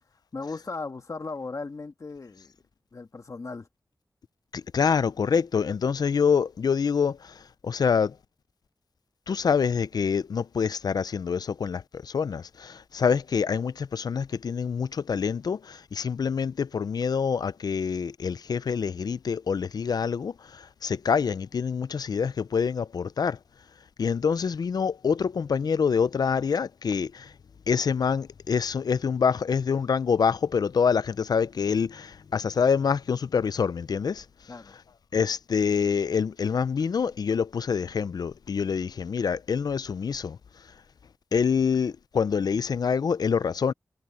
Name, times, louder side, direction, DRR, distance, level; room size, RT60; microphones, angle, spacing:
voice 1, 0.3-2.5 2.9-3.7 34.5-34.8, left 3 dB, 55° left, 1.7 m, -37 dB
voice 2, 4.5-8.2 9.3-23.4 24.0-27.3 27.7-34.2 35.1-40.4 41.3-43.7, left 6 dB, 80° left, 0.5 m, -26 dB
wide cardioid pair, 105°, 7 cm